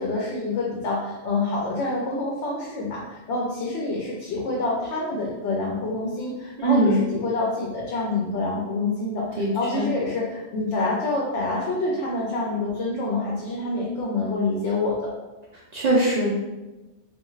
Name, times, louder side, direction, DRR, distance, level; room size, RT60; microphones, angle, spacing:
voice 1, 0.0-15.1, left 2 dB, 75° left, -3 dB, 0.9 m, -27 dB
voice 2, 6.6-7.1 9.4-9.9 15.7-16.3, right 1 dB, 55° right, -5 dB, 0.4 m, -21 dB
2.5 x 2.3 x 3.0 m, 1.1 s
omnidirectional pair, 1.2 m